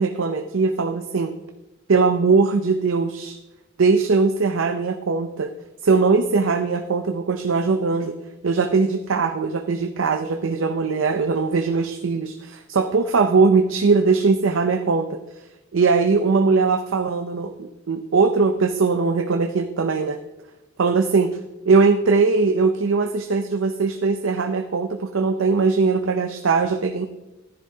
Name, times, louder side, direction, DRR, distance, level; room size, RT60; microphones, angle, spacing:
voice 1, 0.0-1.3 1.9-3.4 3.8-5.5 5.8-8.1 8.4-15.1 15.7-20.2 20.8-21.3 21.7-27.1, right 4 dB, 80° right, 7 dB, 0.6 m, -20 dB
14.5 x 10.5 x 2.8 m, 1.0 s
head